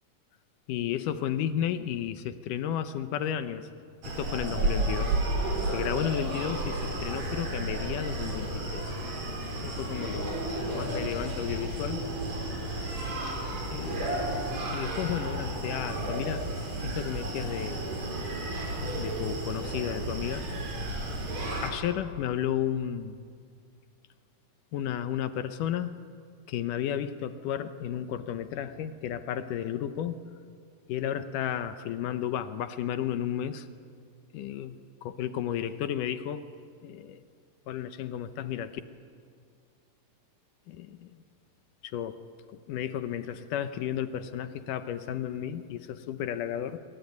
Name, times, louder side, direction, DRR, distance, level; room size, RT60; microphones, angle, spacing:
voice 1, 0.7-3.7 4.1-8.9 9.5-12.0 13.7-14.2 14.7-16.5 16.8-17.9 18.8-20.5 21.6-23.2 24.7-26.0 26.5-30.2 30.9-33.7 34.3-34.8 35.0-36.4 36.8-37.2 37.7-38.8 40.7-41.1 41.8-42.2 42.5-46.8, left 10 dB, 75° left, 11 dB, 2.3 m, -33 dB
Screaming, 4.0-21.7, right 2 dB, 50° right, 5.5 m, -32 dB
sound 1, 9.6-14.5, left 2 dB, 55° left, 3.5 m, -47 dB
24.0 x 23.5 x 9.5 m, 2.2 s
omnidirectional pair, 4.0 m